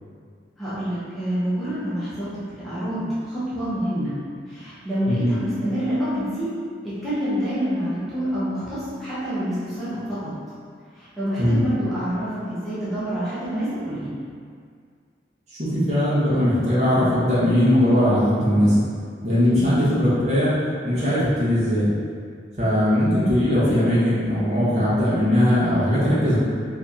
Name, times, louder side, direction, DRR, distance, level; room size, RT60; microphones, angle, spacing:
voice 1, 0.6-4.2 4.5-6.5 6.8-10.3 10.9-14.1 19.5-19.7, equal, ahead, -13 dB, 0.7 m, -27 dB
voice 2, 15.6-18.8 19.2-20.5 20.8-21.9 22.6-26.4, equal, 40° right, -10 dB, 1.0 m, -19 dB
2.8 x 2.7 x 3.6 m, 2.1 s
head